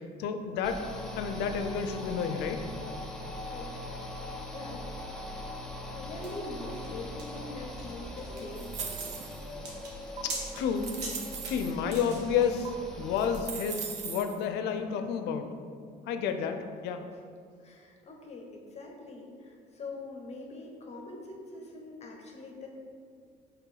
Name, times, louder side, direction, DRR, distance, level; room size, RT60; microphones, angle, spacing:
voice 1, 0.2-0.8 1.1-2.6 10.2-10.9 11.5-15.5 16.1-17.0, left 7 dB, 85° left, 6 dB, 0.6 m, -30 dB
sound 1, 0.6-13.4, left 1 dB, ahead, 0.9 m, -41 dB
voice 2, 3.5-4.9 5.9-9.0 16.4-16.6 17.6-22.7, left 2 dB, 40° left, 0 dB, 1.0 m, -43 dB
sound 2, 6.2-12.5, right 2 dB, 90° right, 1.5 m, -43 dB
sound 3, 8.6-9.5 10.2-10.3 10.8-11.7 12.7-12.8 13.2-14.4, right 6 dB, 45° right, 0.7 m, -39 dB
6.0 x 3.6 x 5.8 m, 2.2 s
cardioid pair, 110°, 17 cm